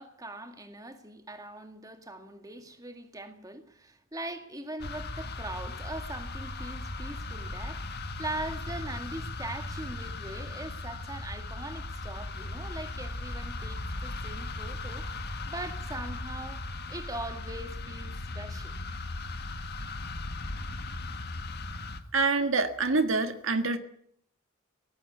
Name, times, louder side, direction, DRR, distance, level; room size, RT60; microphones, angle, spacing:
voice 1, 0.0-7.8 8.2-15.1 15.5-18.7, right 1 dB, 15° right, 2.0 m, -41 dB
sound 1, 4.8-22.0, left 2 dB, 50° left, 1.7 m, -37 dB
voice 2, 22.1-23.8, right 3 dB, 65° right, 1.7 m, -26 dB
18.0 x 15.5 x 9.4 m
head